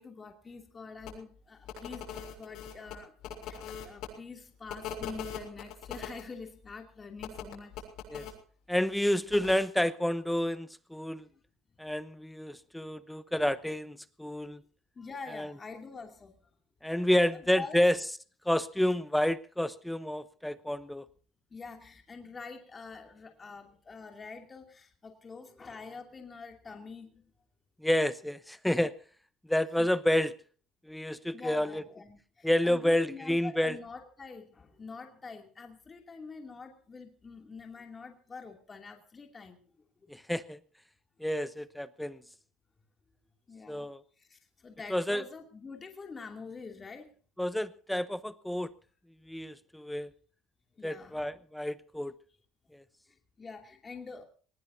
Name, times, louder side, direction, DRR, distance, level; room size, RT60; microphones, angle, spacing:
voice 1, 0.0-3.1 3.4-7.8 11.3-11.4 13.3-13.4 14.9-16.4 17.3-17.8 21.5-27.3 31.3-39.8 43.5-47.1 50.7-51.4 53.1-54.3, left 4 dB, 20° left, 3 dB, 2.6 m, -46 dB
sound 1, 1.0-1.1 1.6-4.1 4.7-6.2 7.2-8.3 9.3-9.5, left 8 dB, 65° left, 7.2 m, -40 dB
voice 2, 8.7-11.3 11.8-14.6 15.4-15.5 16.8-18.0 18.5-21.1 27.8-28.9 29.5-30.3 30.9-31.8 32.4-33.8 40.1-40.6 41.2-42.2 43.7-44.0 44.9-45.2 47.4-48.7 49.3-50.1 50.8-52.1 52.7-52.8, left 1 dB, 5° left, 14 dB, 0.8 m, -29 dB
22.0 x 20.0 x 2.7 m, 0.41 s
cardioid pair, 145°, 0 cm